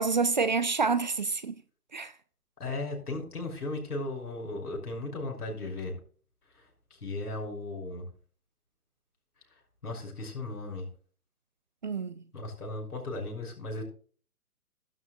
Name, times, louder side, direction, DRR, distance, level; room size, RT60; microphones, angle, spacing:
voice 1, 0.0-1.6 1.9-2.1 11.8-12.2, right 4 dB, 30° right, 0.5 m, -28 dB
voice 2, 2.6-5.9 7.0-8.0 9.8-10.9 12.3-13.8, left 2 dB, 80° left, 6.1 m, -36 dB
14.0 x 12.0 x 2.4 m
figure-of-eight pair, 145°, 45 cm